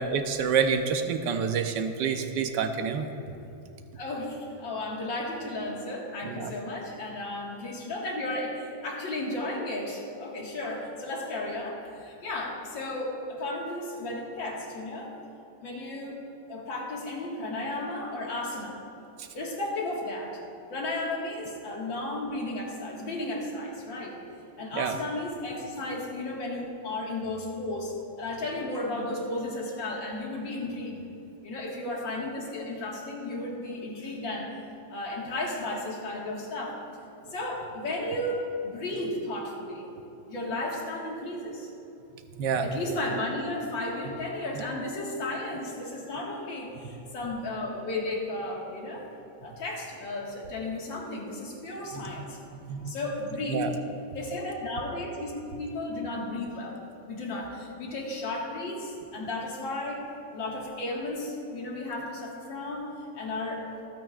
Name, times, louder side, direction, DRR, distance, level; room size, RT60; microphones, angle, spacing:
voice 1, 0.0-3.1 6.2-6.6 19.2-19.3 24.7-25.0 42.4-42.8 51.9-52.1 52.7-52.9 53.5-53.7, right 6 dB, 70° right, 6 dB, 1.3 m, -28 dB
voice 2, 4.0-15.2 15.6-16.2 16.5-18.8 19.3-20.4 20.7-24.2 24.6-31.0 31.4-34.5 34.9-36.8 37.3-39.9 40.3-41.7 42.6-49.1 49.4-52.4 52.8-53.7 54.1-56.8 57.1-60.1 60.3-63.7, left 2 dB, 80° left, -2 dB, 2.5 m, -34 dB
25.5 x 9.2 x 2.4 m, 2.9 s
omnidirectional pair, 2.0 m